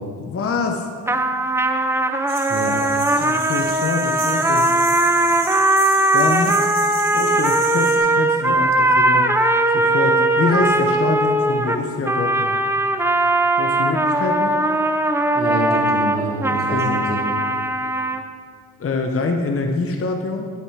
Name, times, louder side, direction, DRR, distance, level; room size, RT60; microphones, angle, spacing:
voice 1, 0.2-0.9 3.2-4.7 6.1-6.6 7.1-9.3 9.7-12.6 13.6-14.6 16.5-16.9 18.8-20.5, left 3 dB, 35° left, 3 dB, 0.9 m, -25 dB
sound 1, 1.1-18.2, right 2 dB, 5° right, 0.5 m, -19 dB
sound 2, 2.3-8.0, right 3 dB, 55° right, 2.8 m, -32 dB
voice 2, 15.3-17.2, right 1 dB, 20° right, -5 dB, 2.5 m, -26 dB
11.5 x 6.8 x 4.7 m, 2.1 s
cardioid pair, 80°, 42 cm